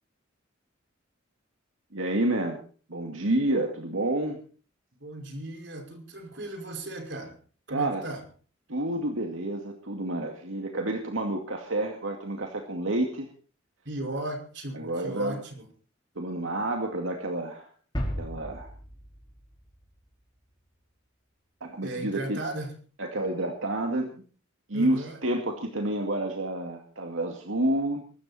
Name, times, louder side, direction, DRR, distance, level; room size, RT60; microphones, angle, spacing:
voice 1, 1.9-2.6 2.9-4.4 7.7-8.0 8.7-13.3 14.7-15.4 16.2-17.7 18.2-18.7 21.6-22.4 23.0-24.1 24.7-28.0, right 1 dB, 85° right, 3 dB, 2.3 m, -29 dB
voice 2, 5.0-7.4 7.7-8.2 13.9-15.7 21.8-22.8 24.7-25.2, right 1 dB, 60° right, 3 dB, 5.5 m, -36 dB
sound 1, 17.9-20.6, equal, 20° left, 4.8 m, -36 dB
23.5 x 13.5 x 4.4 m, 0.41 s
head